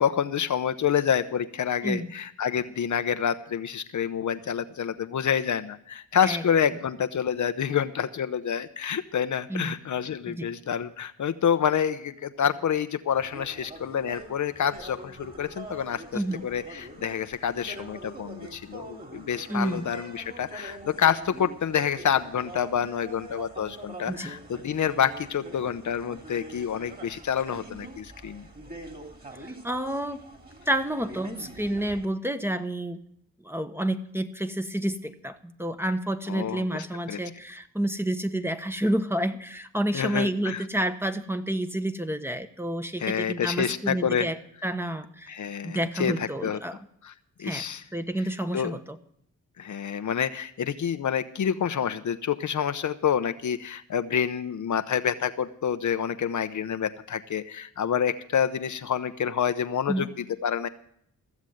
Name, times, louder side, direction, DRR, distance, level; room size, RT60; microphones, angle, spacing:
voice 1, 0.0-28.5 36.3-37.2 39.9-40.6 43.0-44.3 45.3-46.6 47.0-47.1 47.4-47.8 48.5-48.8 49.6-60.7, left 8 dB, 55° left, 10 dB, 0.8 m, -28 dB
sound 1, 13.1-32.1, right 1 dB, 25° right, 3.0 m, -44 dB
voice 2, 19.5-19.9 24.1-24.3 29.3-30.2 30.7-33.0 33.4-45.4 45.6-46.8 47.4-47.6 47.9-49.0 59.9-60.1, right 1 dB, 5° right, 9 dB, 1.1 m, -29 dB
15.0 x 7.2 x 7.8 m, 0.70 s
supercardioid pair, 45°, 36 cm